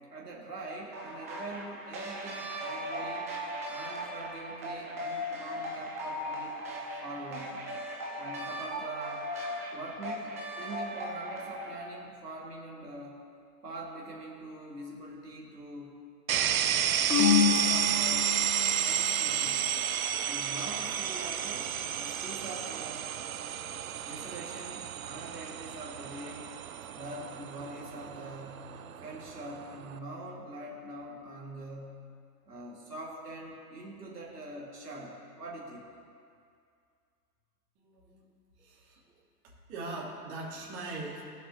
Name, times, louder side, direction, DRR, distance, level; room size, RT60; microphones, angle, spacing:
voice 1, 0.1-3.3 3.7-7.5 8.2-9.3 9.7-13.2 13.6-16.0 17.1-18.3 18.8-19.8 20.2-23.1 24.0-26.5 26.9-32.0 32.5-35.8, right 2 dB, 75° right, -4 dB, 2.0 m, -43 dB
sound 1, 0.9-11.7, equal, 10° right, 0.4 m, -38 dB
sound 2, 16.3-30.0, right 9 dB, 60° right, 0.6 m, -32 dB
sound 3, 17.1-18.8, left 8 dB, 75° left, 1.1 m, -26 dB
voice 2, 37.8-38.2 38.6-39.2 39.7-41.2, right 2 dB, 30° right, -5 dB, 2.8 m, -41 dB
19.5 x 7.6 x 2.8 m, 2.3 s
figure-of-eight pair, 110°, 48 cm